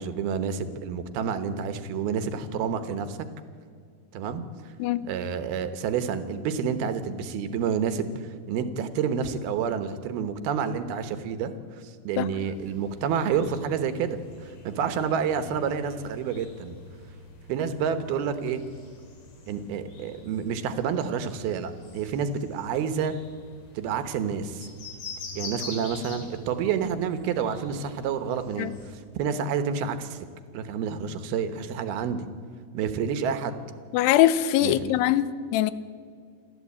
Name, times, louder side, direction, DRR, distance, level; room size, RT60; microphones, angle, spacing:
voice 1, 0.0-3.2 4.1-4.4 5.0-16.8 17.5-18.6 19.5-23.2 23.8-24.7 25.3-30.3 30.5-32.3 32.7-33.6 34.6-35.0, right 7 dB, 75° right, 10 dB, 2.9 m, -29 dB
voice 2, 4.8-5.1 12.2-12.3 28.6-28.7 33.9-35.7, left 13 dB, 85° left, 15 dB, 2.8 m, -22 dB
sound 1, 12.4-28.9, left 3 dB, 60° left, 5.0 m, -45 dB
28.0 x 12.0 x 8.5 m, 2.1 s
omnidirectional pair, 4.7 m